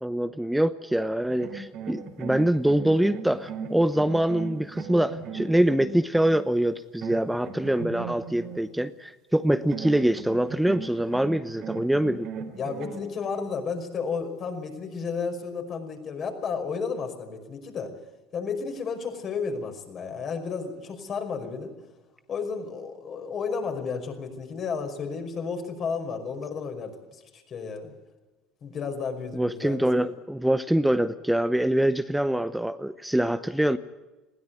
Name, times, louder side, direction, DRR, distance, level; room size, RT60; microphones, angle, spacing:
voice 1, 0.0-12.3 29.3-33.8, right 1 dB, 5° right, 12 dB, 0.9 m, -24 dB
sound 1, 1.3-6.5 7.0-8.6 9.7-13.6, right 5 dB, 60° right, 3.5 m, -38 dB
voice 2, 12.5-17.9 18.3-21.7 22.3-27.9 28.6-29.8, left 5 dB, 45° left, 5 dB, 5.5 m, -32 dB
20.5 x 16.5 x 9.3 m, 1.2 s
hypercardioid pair, 70°, 0 cm